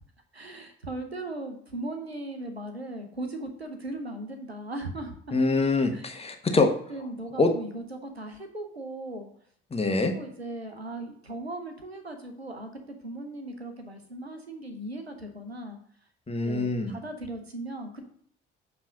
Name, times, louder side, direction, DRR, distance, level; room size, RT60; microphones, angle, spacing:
voice 1, 0.3-5.4 5.9-6.0 6.9-9.3 10.0-12.7 13.0-15.8 16.4-18.1, right 1 dB, 90° right, 6 dB, 0.7 m, -38 dB
voice 2, 5.3-6.7 7.4-7.5 9.7-10.1 16.3-17.0, left 3 dB, 20° left, 4 dB, 1.3 m, -24 dB
7.4 x 3.5 x 5.9 m, 0.62 s
figure-of-eight pair, 45°, 30 cm